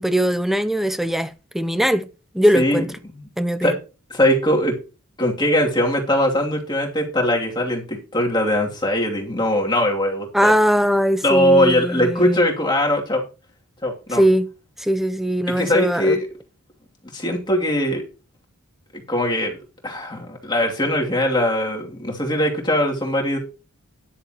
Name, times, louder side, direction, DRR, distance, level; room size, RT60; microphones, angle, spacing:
voice 1, 0.0-2.1 2.3-2.9 3.4-3.8 10.3-12.4 14.1-14.5 14.8-16.2, equal, ahead, 0.5 m, -20 dB
voice 2, 2.5-2.8 3.1-3.2 3.6-3.7 4.1-4.8 5.2-10.5 11.2-13.2 13.8-14.2 15.6-16.3 17.1-18.0 18.9-19.6 19.8-23.4, left 1 dB, 20° left, 2.7 m, -21 dB
13.0 x 10.5 x 3.0 m
head